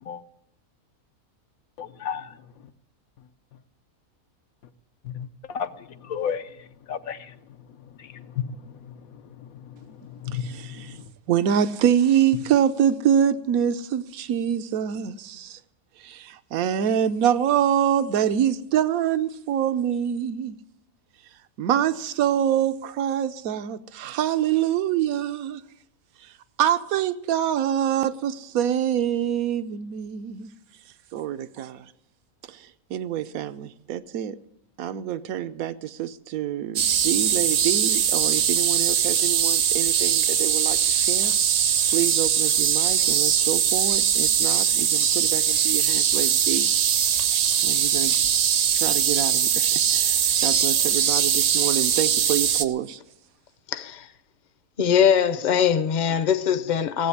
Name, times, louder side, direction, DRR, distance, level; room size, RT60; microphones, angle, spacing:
voice 1, 1.8-2.4 5.0-7.4 7.8-11.1, left 7 dB, 80° left, 1.2 m, -34 dB
voice 2, 10.4-10.9 11.3-15.6 16.0-20.6 21.6-25.6 26.6-30.5 31.1-31.9 32.5-34.4 34.8-41.3 41.9-46.7 47.6-48.1 48.7-53.0, right 9 dB, 80° right, 1.2 m, -26 dB
sound 1, 36.8-52.7, right 8 dB, 60° right, 0.9 m, -21 dB
voice 3, 53.7-54.1 54.8-57.1, left 8 dB, 40° left, 0.7 m, -21 dB
17.0 x 7.9 x 9.7 m
omnidirectional pair, 1.5 m